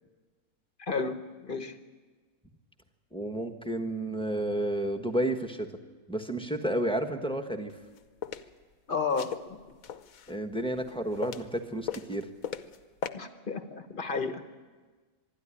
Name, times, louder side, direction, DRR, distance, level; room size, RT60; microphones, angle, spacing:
voice 1, 0.8-1.8 8.9-9.6 13.1-14.4, left 4 dB, 40° left, 9 dB, 1.1 m, -32 dB
voice 2, 3.1-5.7 6.1-7.7 10.3-12.3, right 1 dB, 5° left, 4 dB, 1.1 m, -31 dB
sound 1, 7.7-8.4 9.1-10.4 10.8-11.6 11.9-12.8 13.0-13.1, left 8 dB, 70° left, 1.3 m, -37 dB
25.0 x 11.0 x 10.0 m, 1.4 s
omnidirectional pair, 1.6 m